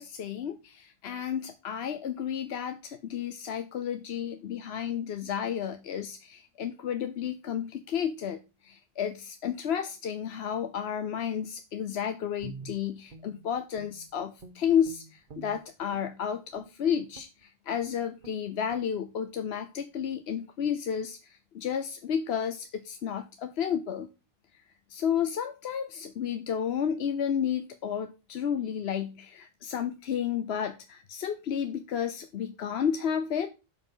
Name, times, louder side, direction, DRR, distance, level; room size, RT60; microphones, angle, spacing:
voice 1, 0.0-8.4 8.6-24.1 24.9-33.5, left 8 dB, 85° left, 1.0 m, -32 dB
Guitar, 12.4-14.1 14.4-16.1 16.5-16.7 17.1-17.4 17.8-17.9 18.2-18.4 18.7-18.9, right 5 dB, 55° right, 1.3 m, -47 dB
11.5 x 4.9 x 5.6 m
omnidirectional pair, 1.0 m